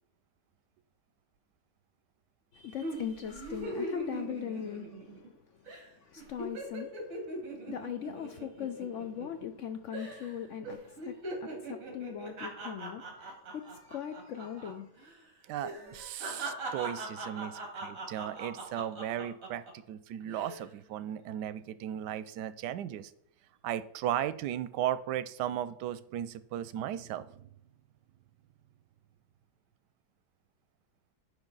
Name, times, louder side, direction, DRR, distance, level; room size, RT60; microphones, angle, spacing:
voice 1, 2.5-15.0, left 9 dB, 70° left, 0.7 m, -40 dB
sound 1, 2.8-5.3 5.7-5.9 6.2-9.6 9.9-10.3 10.6-14.7 15.0-15.2 15.6-19.7 20.2-20.6, right 1 dB, 55° right, 2.4 m, -40 dB
voice 2, 15.4-23.1 23.6-27.5, right 11 dB, 90° right, 1.2 m, -36 dB
10.5 x 5.3 x 3.9 m
omnidirectional pair, 1.7 m